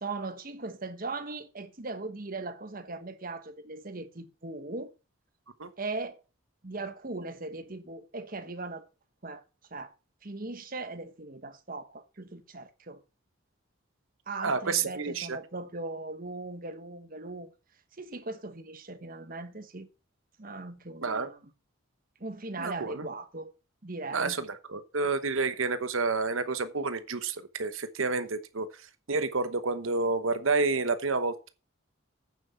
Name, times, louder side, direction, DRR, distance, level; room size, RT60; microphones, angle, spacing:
voice 1, 0.0-4.9 5.8-6.2 6.6-8.9 9.2-9.4 9.7-9.9 10.2-13.0 14.3-17.5 18.0-19.9 20.4-21.4 22.2-23.5 23.8-24.4, right 3 dB, 45° right, 1.2 m, -39 dB
voice 2, 14.4-15.4 21.0-21.3 22.6-23.0 24.1-31.5, right 4 dB, 75° right, 1.0 m, -29 dB
8.9 x 7.7 x 5.6 m
head